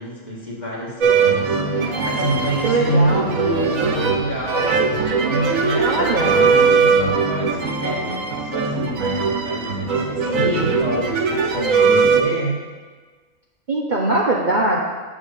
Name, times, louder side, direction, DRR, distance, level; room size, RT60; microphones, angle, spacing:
voice 1, 0.0-4.8 5.2-12.6, right 1 dB, 35° left, -6 dB, 1.9 m, -27 dB
sound 1, 1.0-12.2, right 5 dB, 85° right, 1.2 m, -20 dB
sound 2, 1.7-7.3, right 3 dB, 65° right, 1.4 m, -34 dB
voice 2, 2.6-3.3 5.8-6.4 13.7-14.8, right 2 dB, 45° right, -3 dB, 0.8 m, -21 dB
8.9 x 3.6 x 6.6 m, 1.4 s
omnidirectional pair, 1.4 m